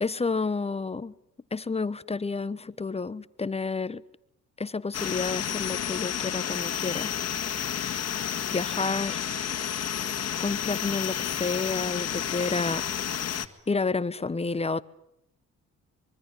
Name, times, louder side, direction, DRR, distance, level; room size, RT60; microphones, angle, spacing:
voice 1, 0.0-1.1 1.5-4.0 4.6-7.1 7.9-8.0 8.5-9.2 10.4-12.9 13.7-14.8, left 4 dB, 20° left, 17 dB, 1.0 m, -30 dB
sound 1, 4.9-13.5, left 9 dB, 55° left, 2.0 m, -31 dB
25.0 x 23.0 x 9.9 m, 0.77 s
cardioid pair, 90°, 30 cm